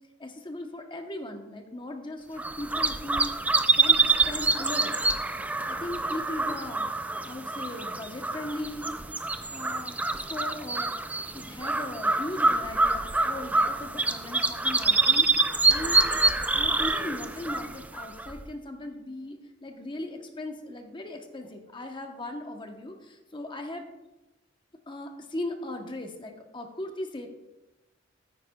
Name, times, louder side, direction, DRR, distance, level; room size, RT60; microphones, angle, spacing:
voice 1, 0.2-3.3 3.8-5.0 5.6-9.0 9.5-16.0 16.5-23.8 24.9-27.3, left 1 dB, 25° left, 5 dB, 0.9 m, -38 dB
sound 1, 2.4-18.4, right 3 dB, 10° right, 0.3 m, -26 dB
13.0 x 9.8 x 2.3 m, 1.0 s
head